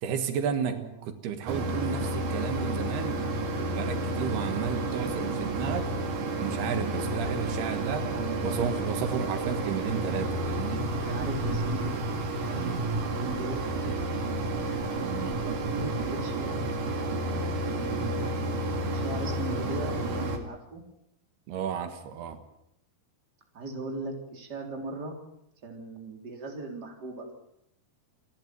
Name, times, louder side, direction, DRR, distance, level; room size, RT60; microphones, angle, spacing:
voice 1, 0.0-3.2 3.7-5.9 6.4-8.1 8.4-10.9 12.5-12.8 15.0-15.4 21.5-22.4, right 7 dB, 90° right, 8 dB, 3.6 m, -33 dB
voice 2, 0.6-1.1 7.8-8.6 9.2-9.5 11.1-11.9 12.4-13.6 15.0-16.6 17.6-18.5 18.9-20.8 23.5-25.2 25.6-27.3, right 3 dB, 25° right, 2 dB, 3.9 m, -38 dB
Mechanisms, 1.5-20.4, right 2 dB, 55° right, 3.7 m, -30 dB
29.0 x 11.5 x 9.2 m, 0.79 s
omnidirectional pair, 4.5 m